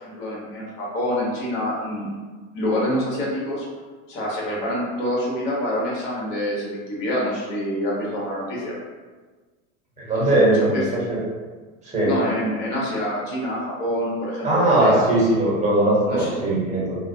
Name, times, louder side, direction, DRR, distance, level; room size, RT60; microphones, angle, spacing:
voice 1, 0.0-2.1 2.5-3.6 4.1-8.7 10.1-10.8 12.0-15.0 16.1-16.3, left 1 dB, 55° left, -5 dB, 1.2 m, -26 dB
voice 2, 10.0-11.2 11.8-12.1 14.4-17.0, right 1 dB, 15° right, -6 dB, 1.0 m, -20 dB
2.5 x 2.0 x 2.6 m, 1.3 s
hypercardioid pair, 110°, 40 cm